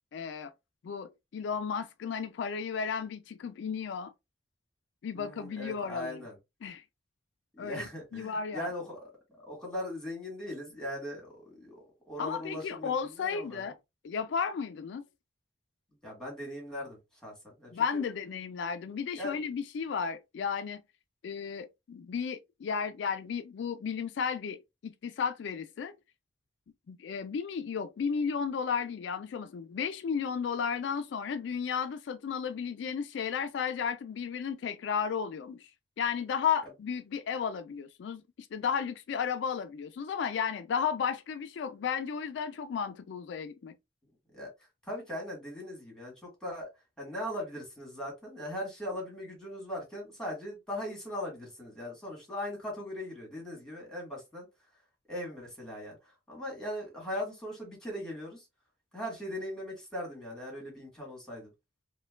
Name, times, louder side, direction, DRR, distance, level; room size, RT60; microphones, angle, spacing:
voice 1, 0.1-0.5 0.8-4.1 5.0-6.2 6.6-6.8 7.6-8.7 12.2-13.7 14.0-15.0 17.7-20.8 21.2-26.0 26.9-35.7 36.0-38.2 38.5-43.7, left 6 dB, 70° left, 0.3 m, -34 dB
voice 2, 5.1-6.3 7.5-9.1 9.4-13.7 16.0-17.8 19.1-19.4 44.3-44.5 44.8-46.7 47.0-54.5 55.1-58.5 58.9-61.5, left 1 dB, 5° left, 1.5 m, -39 dB
4.2 x 2.2 x 2.2 m
head